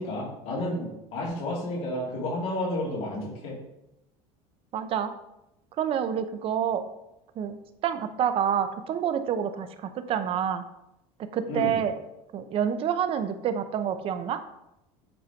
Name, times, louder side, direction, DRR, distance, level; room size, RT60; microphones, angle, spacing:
voice 1, 0.0-3.6 11.5-11.7, left 1 dB, 50° left, -6 dB, 3.0 m, -31 dB
voice 2, 4.7-5.1 5.8-6.8 7.4-10.6 11.2-11.9 12.3-14.4, right 8 dB, 40° right, 10 dB, 0.7 m, -28 dB
7.7 x 4.4 x 4.5 m, 0.87 s
supercardioid pair, 135°, 15 cm